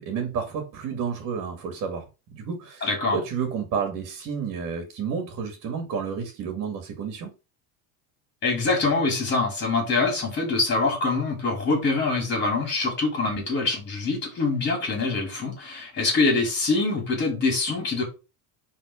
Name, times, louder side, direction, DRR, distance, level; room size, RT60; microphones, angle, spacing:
voice 1, 0.0-2.1 2.3-7.3, right 6 dB, 45° right, 2.5 m, -31 dB
voice 2, 2.8-3.2 8.4-18.0, left 3 dB, 25° left, 5.3 m, -24 dB
10.0 x 4.3 x 5.4 m
cardioid pair, 155°, 40 cm